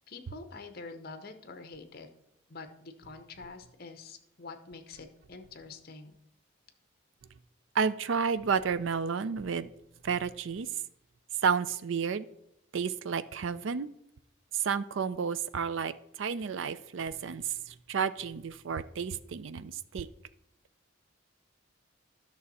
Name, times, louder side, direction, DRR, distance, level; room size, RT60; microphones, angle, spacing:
voice 1, 0.1-2.1 2.5-6.1, left 4 dB, 50° left, 7 dB, 0.8 m, -46 dB
voice 2, 7.7-9.7 10.0-10.7 11.4-12.3 12.7-13.9 14.5-20.1, right 6 dB, 70° right, 15 dB, 0.4 m, -31 dB
11.0 x 6.2 x 4.1 m, 0.80 s
head